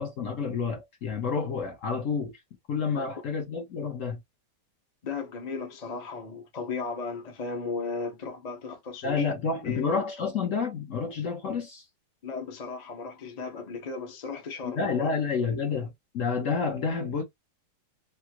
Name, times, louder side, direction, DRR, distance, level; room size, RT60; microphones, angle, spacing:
voice 1, 0.0-2.3 2.7-4.2 9.0-11.8 14.6-17.2, left 5 dB, 55° left, 1.0 m, -29 dB
voice 2, 5.0-9.3 9.6-9.9 12.2-15.1, left 4 dB, 35° left, 0.7 m, -36 dB
3.6 x 2.1 x 2.8 m
omnidirectional pair, 1.9 m